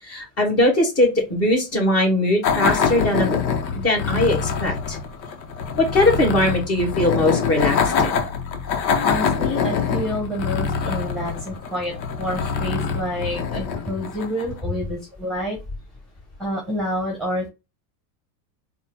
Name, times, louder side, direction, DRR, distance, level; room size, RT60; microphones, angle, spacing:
voice 1, 0.0-3.4 3.8-5.0 5.8-8.2, left 1 dB, 30° left, -1 dB, 2.4 m, -20 dB
sound 1, 2.4-14.6, left 6 dB, 85° left, 1.1 m, -24 dB
voice 2, 9.0-15.6 16.4-17.5, equal, ahead, -1 dB, 1.3 m, -28 dB
4.5 x 2.5 x 3.5 m, 0.27 s
supercardioid pair, 110°, 50 cm